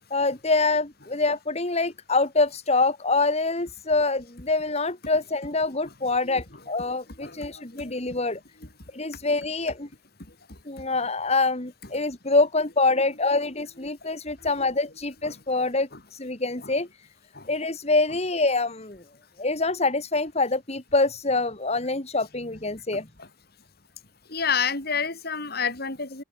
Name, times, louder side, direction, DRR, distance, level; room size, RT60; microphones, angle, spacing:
voice 1, 0.1-8.4 8.9-9.9 10.7-17.1 17.5-19.0 19.4-23.1, left 3 dB, 35° left, 2.5 m, -25 dB
voice 2, 7.2-8.2 9.0-9.1 10.3-10.6 14.4-14.5 15.2-15.4 16.6-16.7 17.3-17.5 23.2-23.3 24.3-26.2, left 6 dB, 55° left, 5.5 m, -30 dB
open air
head